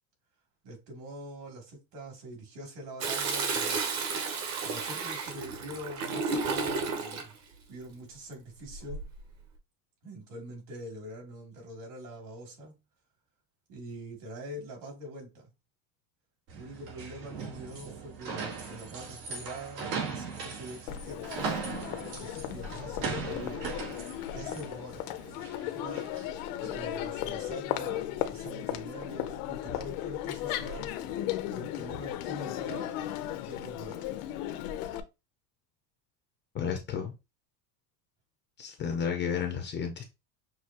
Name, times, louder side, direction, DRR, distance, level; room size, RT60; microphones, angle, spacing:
voice 1, 0.6-3.8 4.6-7.3 7.7-9.0 10.0-12.8 13.7-15.5 16.5-21.4 22.0-23.7 24.3-25.1 25.7-26.1 26.6-30.9 31.5-33.0 33.3-34.1, right 1 dB, 65° right, 2.9 m, -44 dB
Toilet flush, 3.0-7.3 8.7-9.2, right 4 dB, 35° right, 0.9 m, -32 dB
sound 1, 16.5-26.9, right 5 dB, 85° right, 2.6 m, -39 dB
Crowd, 20.9-35.0, left 12 dB, 70° left, 0.8 m, -36 dB
voice 2, 36.5-37.1 38.6-40.0, left 7 dB, 25° left, 0.5 m, -32 dB
6.2 x 2.7 x 2.8 m
cardioid pair, 170°, 47 cm